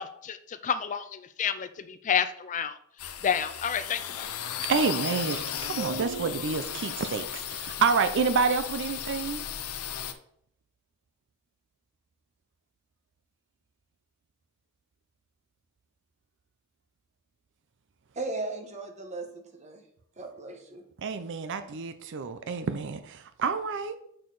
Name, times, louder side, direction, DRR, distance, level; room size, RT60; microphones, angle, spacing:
voice 1, 0.0-2.7 3.2-4.3, left 7 dB, 35° left, 12 dB, 0.4 m, -30 dB
sound 1, 3.0-10.1, left 9 dB, 85° left, 0.7 m, -35 dB
voice 2, 4.6-9.4 21.0-24.0, right 5 dB, 60° right, 11 dB, 0.5 m, -28 dB
voice 3, 18.1-19.8 20.2-20.8, right 2 dB, 35° right, 5 dB, 1.1 m, -37 dB
6.6 x 6.3 x 4.0 m, 0.68 s
head